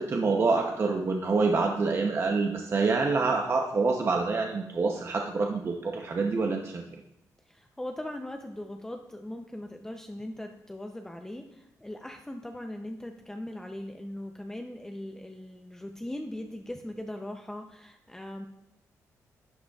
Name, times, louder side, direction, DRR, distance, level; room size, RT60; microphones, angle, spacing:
voice 1, 0.0-6.8, right 4 dB, 40° right, 3 dB, 0.7 m, -26 dB
voice 2, 7.5-18.5, left 1 dB, 10° left, 4 dB, 0.6 m, -40 dB
11.5 x 7.9 x 2.4 m, 0.87 s
cardioid pair, 95°, 6 cm